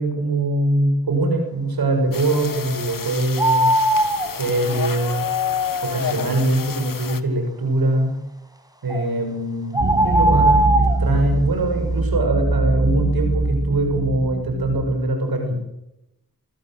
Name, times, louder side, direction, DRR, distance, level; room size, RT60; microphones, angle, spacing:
voice 1, 0.0-3.7 4.3-5.3 5.8-8.1 8.8-10.6 11.0-15.6, right 2 dB, 85° right, 4 dB, 7.0 m, -22 dB
sound 1, 2.1-7.2, left 7 dB, 65° left, 1.6 m, -29 dB
sound 2, 3.4-4.3 8.9-9.0 9.7-11.0, right 1 dB, 10° right, 5.5 m, -18 dB
sound 3, 9.8-15.0, right 2 dB, 40° right, 2.4 m, -23 dB
26.0 x 15.0 x 7.9 m, 0.90 s
cardioid pair, 50°, 35 cm